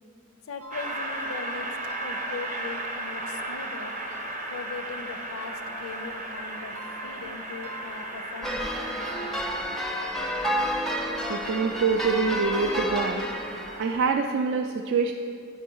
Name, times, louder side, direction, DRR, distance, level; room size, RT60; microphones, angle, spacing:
voice 1, 0.5-3.9 4.5-9.8, left 4 dB, 80° left, 9 dB, 0.5 m, -40 dB
sound 1, 0.6-4.9 5.4-12.0 12.5-14.1, right 2 dB, 90° right, 0.8 m, -48 dB
Train, 0.7-14.1, right 1 dB, 35° right, 0.7 m, -36 dB
sound 2, 8.4-13.8, equal, ahead, 0.4 m, -30 dB
voice 2, 11.3-13.2 13.8-15.1, right 5 dB, 60° right, 3 dB, 0.3 m, -25 dB
8.0 x 5.4 x 4.5 m, 2.4 s
head